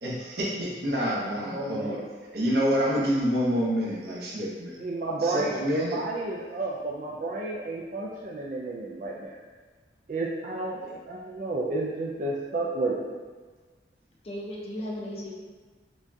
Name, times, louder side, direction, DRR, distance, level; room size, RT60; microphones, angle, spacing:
voice 1, 0.0-2.0 2.3-4.8 5.2-6.0, equal, 60° right, -4 dB, 0.8 m, -27 dB
voice 2, 1.1-2.0 4.8-9.4 10.1-13.1, right 2 dB, 45° right, -4 dB, 0.3 m, -32 dB
voice 3, 14.2-15.3, left 1 dB, 35° left, -3 dB, 0.6 m, -36 dB
5.1 x 2.3 x 2.6 m, 1.4 s
head